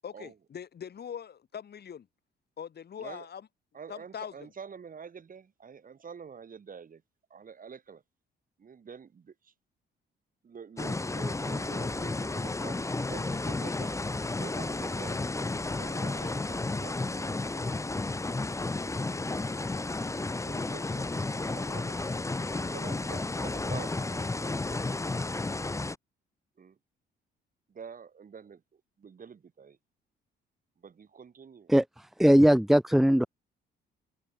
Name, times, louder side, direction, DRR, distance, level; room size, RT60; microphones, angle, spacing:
voice 1, 0.0-2.1 2.6-3.5 3.9-4.5, left 8 dB, 55° left, 7.4 m, -42 dB
voice 2, 3.7-7.0 7.3-8.0 8.6-9.5 10.4-13.9 14.4-15.3 15.7-17.7 20.4-21.1 21.5-22.0 22.6-25.3 26.6-26.8 27.7-29.8 30.8-31.7, right 6 dB, 45° right, 5.4 m, -47 dB
sound 1, 10.8-26.0, left 2 dB, 15° left, 1.1 m, -32 dB
voice 3, 31.7-33.3, equal, ahead, 0.8 m, -21 dB
cardioid pair, 90°, 20 cm